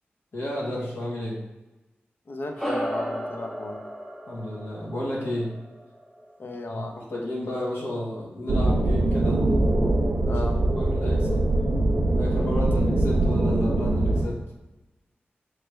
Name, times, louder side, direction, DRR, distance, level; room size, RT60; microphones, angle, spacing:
voice 1, 0.3-1.4 4.3-5.6 6.6-9.5 10.2-10.5 10.7-11.4 12.1-14.4, left 1 dB, 85° left, -4 dB, 1.0 m, -32 dB
voice 2, 2.3-3.8 6.4-7.0 10.2-10.6, left 2 dB, 60° left, 4 dB, 0.5 m, -35 dB
sound 1, 2.6-7.3, equal, 10° left, 1.0 m, -35 dB
sound 2, 8.5-14.2, right 2 dB, 70° right, 0.4 m, -22 dB
3.3 x 3.1 x 3.1 m, 1.1 s
cardioid pair, 55°, 4 cm